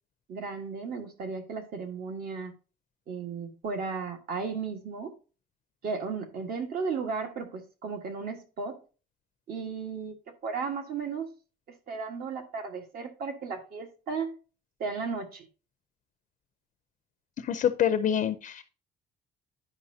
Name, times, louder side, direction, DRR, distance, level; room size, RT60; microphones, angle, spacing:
voice 1, 0.3-2.5 3.1-5.2 5.8-8.8 9.5-10.2 10.4-11.3 11.9-14.4 14.8-15.5, right 5 dB, 60° right, 1.5 m, -35 dB
voice 2, 17.4-18.6, left 9 dB, 45° left, 0.5 m, -26 dB
10.5 x 5.4 x 2.7 m
cardioid pair, 150°, 18 cm